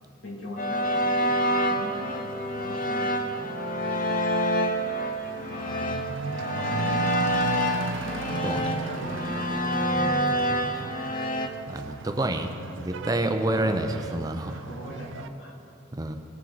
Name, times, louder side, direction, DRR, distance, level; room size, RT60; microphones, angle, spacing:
voice 1, 0.2-2.1 2.6-3.5 5.5-6.1 6.5-7.4 8.0-11.0 13.5-13.8 14.4-15.5, equal, 85° left, -2 dB, 2.3 m, -41 dB
sound 1, 0.6-11.5, equal, 45° left, 0.6 m, -27 dB
Truck / Accelerating revving vroom, 0.9-15.3, right 4 dB, 75° right, 0.4 m, -37 dB
voice 2, 11.7-14.5 15.9-16.2, right 1 dB, 20° right, 6 dB, 0.6 m, -28 dB
19.5 x 7.2 x 4.0 m, 2.9 s
head